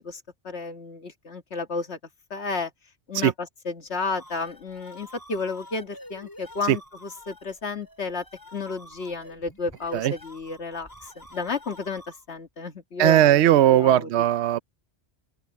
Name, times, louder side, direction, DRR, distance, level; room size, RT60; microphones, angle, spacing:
voice 1, 0.0-2.0 2.3-2.7 3.1-3.3 3.7-8.2 8.5-13.4 13.7-14.1, left 4 dB, 70° left, 2.0 m, -32 dB
sound 1, 3.9-12.4, left 1 dB, 15° left, 4.9 m, -48 dB
voice 2, 13.0-14.6, right 12 dB, 75° right, 0.9 m, -18 dB
open air
omnidirectional pair, 1.2 m